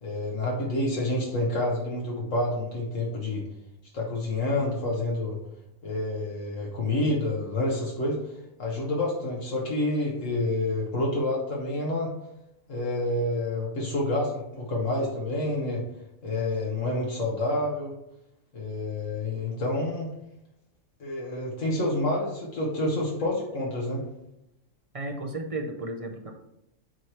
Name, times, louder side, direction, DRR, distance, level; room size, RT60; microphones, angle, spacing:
voice 1, 0.0-3.4 3.9-5.4 5.8-8.2 8.6-12.1 12.7-15.8 16.2-17.9 18.5-20.1 21.0-24.0, left 1 dB, 70° left, -2 dB, 1.6 m, -28 dB
voice 2, 24.9-26.3, right 2 dB, 35° right, 4 dB, 0.6 m, -33 dB
8.9 x 3.2 x 4.4 m, 0.84 s
omnidirectional pair, 1.4 m